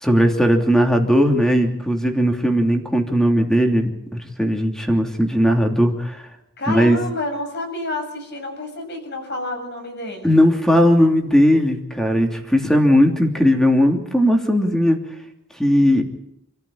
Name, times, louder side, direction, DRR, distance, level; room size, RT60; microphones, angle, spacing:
voice 1, 0.0-3.9 4.2-6.2 6.7-7.0 10.2-15.0 15.6-16.0, equal, ahead, 4 dB, 3.0 m, -17 dB
voice 2, 6.6-10.3, left 2 dB, 50° left, 4 dB, 7.1 m, -29 dB
28.0 x 14.5 x 8.7 m, 0.81 s
head